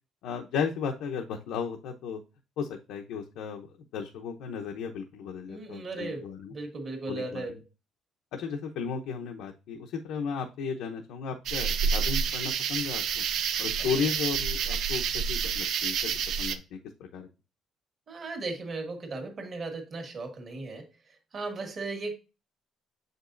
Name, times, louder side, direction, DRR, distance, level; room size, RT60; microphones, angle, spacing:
voice 1, 0.2-2.2 2.6-3.7 3.9-6.5 7.1-7.6 8.3-13.2 13.6-15.0 15.3-16.1 16.4-17.3, left 6 dB, 90° left, 2 dB, 0.8 m, -34 dB
voice 2, 5.5-7.5 13.8-14.0 18.1-22.1, right 3 dB, 30° right, 4 dB, 1.4 m, -37 dB
sound 1, 11.5-16.6, right 7 dB, 60° right, 0.6 m, -29 dB
7.3 x 5.3 x 2.5 m, 0.30 s
cardioid pair, 170°, 0 cm